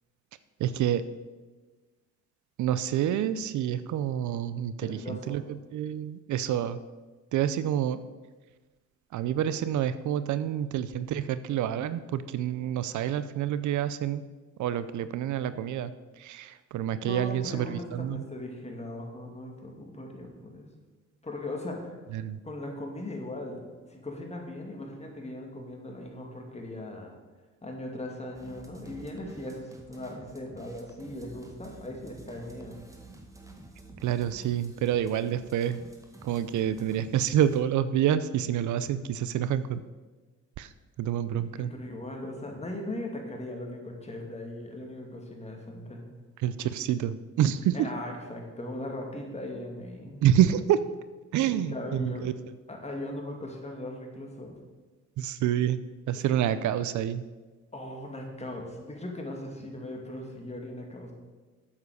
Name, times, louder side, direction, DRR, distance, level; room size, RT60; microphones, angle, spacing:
voice 1, 0.6-1.0 2.6-6.8 7.3-8.0 9.1-14.2 14.6-18.2 22.1-22.4 34.0-35.8 36.2-39.8 40.6-40.7 41.0-41.7 46.4-47.9 50.2-50.8 51.3-52.3 55.2-55.8 56.1-57.2, right 10 dB, 75° right, 14 dB, 0.6 m, -28 dB
voice 2, 4.8-5.4 17.0-20.7 21.2-22.0 22.4-27.1 27.6-32.8 41.4-46.0 47.7-50.2 51.4-52.3 52.7-54.6 56.1-56.4 57.7-61.1, left 1 dB, 20° left, 1 dB, 2.5 m, -39 dB
sound 1, 28.3-37.6, right 2 dB, 10° right, 1.6 m, -50 dB
8.3 x 7.4 x 6.6 m, 1.3 s
cardioid pair, 90°, 30 cm